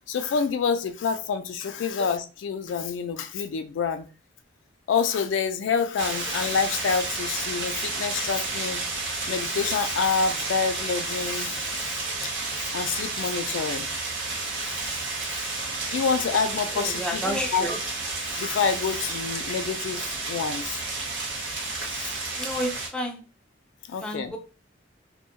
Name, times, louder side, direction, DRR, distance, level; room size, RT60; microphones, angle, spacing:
voice 1, 0.0-4.1 4.9-8.8 9.3-12.0 12.5-13.9 14.4-15.0 15.3-15.5 15.9-17.7 18.2-20.0 20.3-20.8 21.8-22.1 23.9-24.3, left 5 dB, 80° left, 0.3 m, -28 dB
sound 1, 6.0-22.9, right 3 dB, 80° right, 1.0 m, -31 dB
voice 2, 16.7-17.8 22.4-23.2 24.0-24.4, equal, 5° left, 0.3 m, -30 dB
2.2 x 2.1 x 2.8 m
head